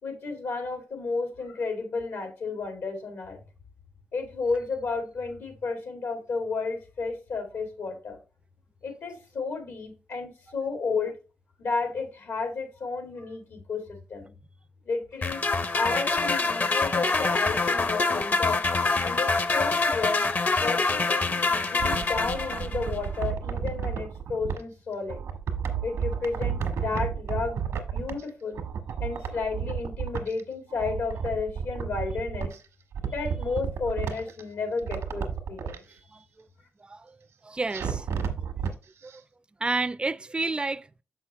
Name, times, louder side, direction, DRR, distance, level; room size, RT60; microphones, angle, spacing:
voice 1, 0.0-3.4 4.1-8.2 8.8-11.1 11.6-14.3 14.9-15.4 15.7-18.6 19.0-20.2 20.6-25.2 25.8-27.6 27.9-28.6 29.0-32.5 33.1-35.8, left 4 dB, 80° left, 2.3 m, -32 dB
sound 1, 15.2-23.0, left 3 dB, 40° left, 0.7 m, -25 dB
sound 2, 21.5-24.6 25.1-28.3 28.5-30.4 30.7-32.6 32.9-34.4 34.8-35.8 37.7-38.7 39.1-39.2, right 7 dB, 85° right, 1.1 m, -32 dB
voice 2, 36.1-36.5 36.8-37.2 37.4-38.1 38.6-38.7 39.0-39.2 39.6-40.9, right 3 dB, 20° right, 0.4 m, -31 dB
6.3 x 5.6 x 3.0 m
cardioid pair, 60°, 5 cm